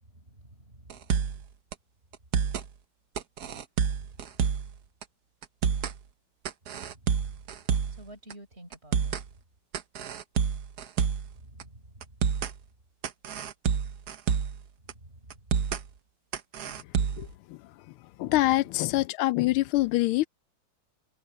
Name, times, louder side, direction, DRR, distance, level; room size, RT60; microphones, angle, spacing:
voice 1, 0.0-1.0 3.9-4.3 6.7-7.5 8.0-9.1 11.3-12.3 14.8-15.5 18.2-18.5, right 1 dB, 30° right, 4.8 m, -51 dB
sound 1, 0.9-1.4 1.7-1.8 2.1-2.7 3.2-4.7 5.0-5.1 5.4-6.0 6.4-8.0 8.3-8.4 8.7-9.3 9.7-11.3 11.6-11.7 12.0-12.5 13.0-14.6 14.9-15.0 15.3-15.8 16.3-17.3, right 7 dB, 55° right, 1.3 m, -28 dB
voice 2, 17.2-17.6 18.2-20.3, left 17 dB, 90° left, 1.4 m, -25 dB
omnidirectional pair, 2.3 m